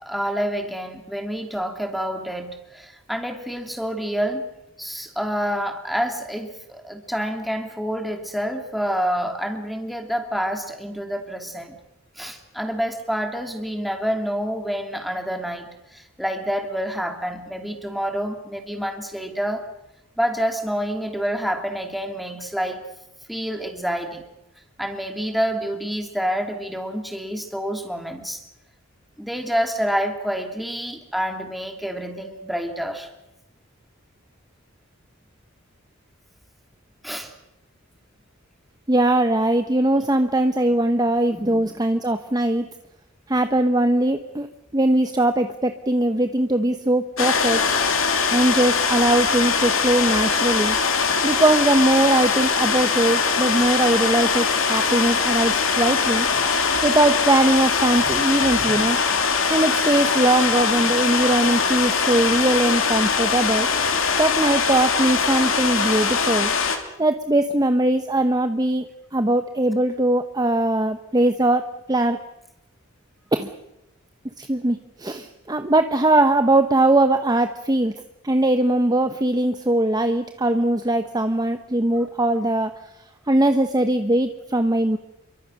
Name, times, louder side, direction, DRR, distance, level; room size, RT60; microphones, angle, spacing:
voice 1, 0.0-4.5 4.8-11.8 12.2-19.7 20.2-22.8 23.3-24.2 24.8-28.4 29.2-33.1 37.0-37.3 41.3-41.8 56.3-56.4 58.1-58.8 81.9-82.1, equal, ahead, 4 dB, 2.9 m, -28 dB
voice 2, 38.9-42.7 43.3-44.5 44.7-47.7 48.3-50.8 51.2-56.3 56.8-59.0 59.5-63.7 64.2-66.5 67.0-68.9 69.1-72.3 73.3-73.5 74.4-82.7 83.3-85.0, right 1 dB, 20° right, 8 dB, 0.9 m, -20 dB
sound 1, 47.2-66.8, left 5 dB, 70° left, 2.9 m, -22 dB
28.0 x 23.5 x 6.5 m, 0.89 s
head